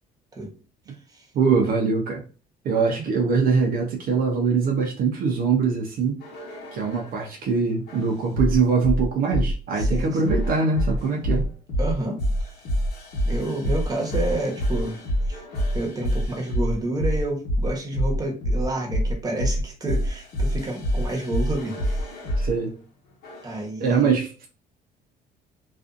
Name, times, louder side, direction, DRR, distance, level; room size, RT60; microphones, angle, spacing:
voice 1, 1.3-2.2 2.6-6.2 6.7-11.5 22.4-22.7 23.8-24.5, right 5 dB, 60° right, 1 dB, 0.6 m, -23 dB
sound 1, 6.2-7.2 7.9-22.5 23.2-23.6, equal, 70° left, 1.1 m, -26 dB
voice 2, 9.7-10.3 11.8-12.5 13.2-15.4 15.7-22.1 23.4-24.1, right 2 dB, 20° right, 0 dB, 1.0 m, -29 dB
2.5 x 2.4 x 2.4 m, 0.38 s
cardioid pair, 110°, 17 cm